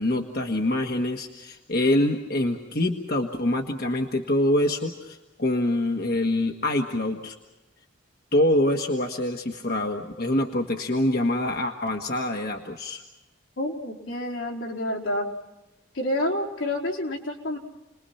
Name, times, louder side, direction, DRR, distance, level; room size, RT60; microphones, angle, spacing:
voice 1, 0.0-7.3 8.3-13.0, left 1 dB, 50° left, 3 dB, 1.5 m, -25 dB
voice 2, 13.6-15.3 15.9-17.6, left 1 dB, 80° left, 0 dB, 4.1 m, -28 dB
30.0 x 21.5 x 5.7 m, 1.0 s
head